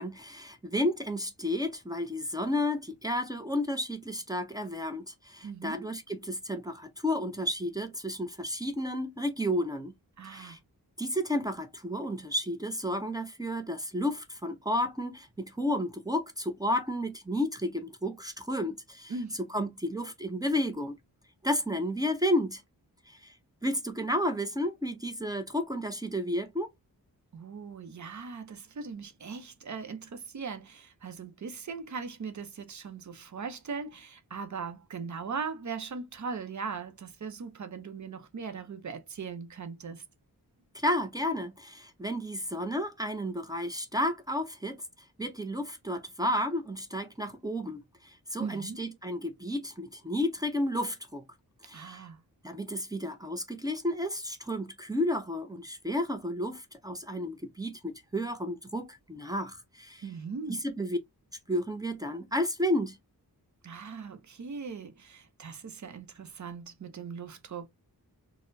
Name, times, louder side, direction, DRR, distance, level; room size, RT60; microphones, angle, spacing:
voice 1, 0.0-10.0 10.3-10.6 11.0-19.1 19.4-21.0 21.4-22.6 23.1-23.3 23.6-26.7 40.7-44.8 45.2-51.2 51.6-52.1 52.4-60.0 60.5-61.0 61.5-63.0, left 1 dB, 10° right, 0.5 m, -32 dB
voice 2, 5.4-5.9 10.2-10.6 19.1-19.7 27.3-40.0 48.4-48.8 51.7-52.2 60.0-60.6 63.6-67.7, right 5 dB, 50° right, 0.6 m, -39 dB
4.2 x 2.1 x 2.5 m
wide cardioid pair, 110°, 37 cm